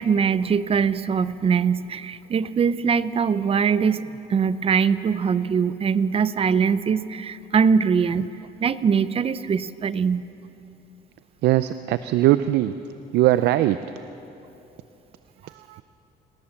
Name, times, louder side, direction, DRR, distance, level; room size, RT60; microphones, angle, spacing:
voice 1, 0.0-8.3 8.6-10.3, right 6 dB, 35° right, 15 dB, 0.7 m, -22 dB
voice 2, 11.4-12.7 13.1-13.8 15.7-15.8, right 14 dB, 80° right, 12 dB, 0.6 m, -20 dB
27.0 x 18.5 x 7.2 m, 3.0 s
cardioid pair, 110°, 17 cm